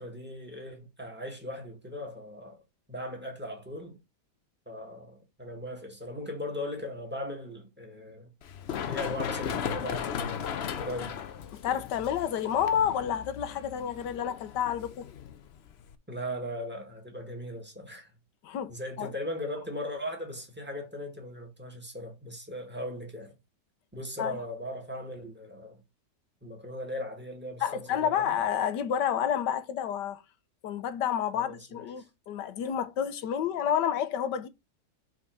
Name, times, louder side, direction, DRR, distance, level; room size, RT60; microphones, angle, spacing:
voice 1, 0.0-2.6 2.9-4.0 4.7-8.3 8.9-11.2 16.1-18.1 18.7-23.4 23.9-25.8 26.4-28.4 31.3-32.0, left 1 dB, 5° right, 1.8 m, -38 dB
Run, 8.4-15.9, left 8 dB, 65° left, 0.6 m, -37 dB
voice 2, 11.5-15.1 18.4-19.1 24.2-24.4 27.6-30.2 30.6-34.5, left 9 dB, 80° left, 1.5 m, -30 dB
6.0 x 4.0 x 5.4 m
omnidirectional pair, 1.8 m